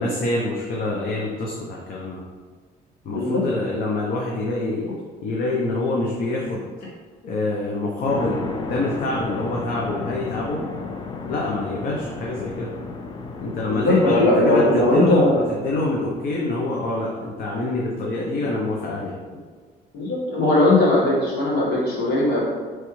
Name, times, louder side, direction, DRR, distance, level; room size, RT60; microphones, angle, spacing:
voice 1, 0.0-2.2 3.0-4.9 5.2-6.7 7.2-10.7 11.3-12.7 13.4-19.2, left 2 dB, 60° left, -2 dB, 0.7 m, -26 dB
voice 2, 3.1-3.4 13.7-15.4 19.9-22.4, left 2 dB, 85° left, -6 dB, 1.4 m, -19 dB
sound 1, 8.1-17.1, left 4 dB, 25° left, 0.4 m, -34 dB
4.7 x 3.1 x 3.1 m, 1.5 s
cardioid pair, 110°, 17 cm